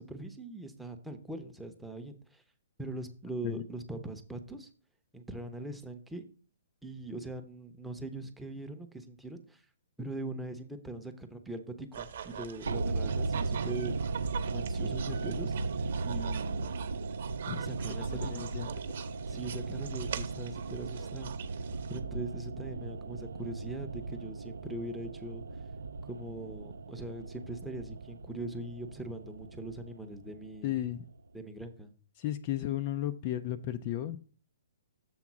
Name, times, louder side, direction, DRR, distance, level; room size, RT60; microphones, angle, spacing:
voice 1, 0.0-2.4 2.8-4.7 5.1-6.2 6.8-9.6 10.0-14.0 14.4-15.5 16.0-16.8 17.6-18.5 19.3-21.3 21.9-25.4 26.0-30.8 31.3-31.9, right 2 dB, 5° right, 5 dB, 0.7 m, -41 dB
sound 1, 11.9-22.0, right 8 dB, 60° right, 0.9 m, -44 dB
sound 2, 12.7-30.9 31.1-31.2, right 3 dB, 85° right, 0.4 m, -37 dB
voice 2, 18.3-18.7 30.6-31.0 32.2-34.2, left 13 dB, 35° left, 11 dB, 0.4 m, -34 dB
7.2 x 3.7 x 6.0 m, 0.41 s
hypercardioid pair, 150°, 0 cm